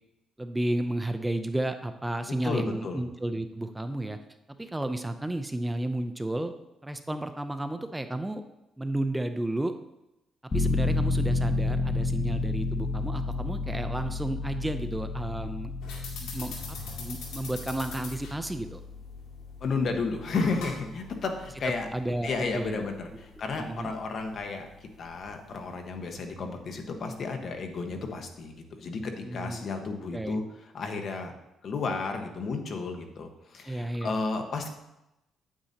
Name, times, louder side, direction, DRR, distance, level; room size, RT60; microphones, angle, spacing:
voice 1, 0.4-4.2 4.6-6.5 6.8-8.4 8.8-9.7 10.4-15.7 16.2-18.8 21.9-22.9 23.6-23.9 29.3-29.7 30.1-30.4 33.7-34.1, right 1 dB, 10° right, 8 dB, 0.5 m, -32 dB
voice 2, 2.4-3.0 19.6-21.9 22.2-30.4 30.7-31.3 31.6-34.7, left 4 dB, 55° left, 4 dB, 1.3 m, -32 dB
sound 1, 10.5-23.0 23.4-23.5, left 3 dB, 35° left, 1.6 m, -32 dB
sound 2, 15.8-25.9, left 4 dB, 90° left, 2.1 m, -45 dB
9.1 x 8.8 x 2.8 m, 0.91 s
cardioid pair, 90°, 0 cm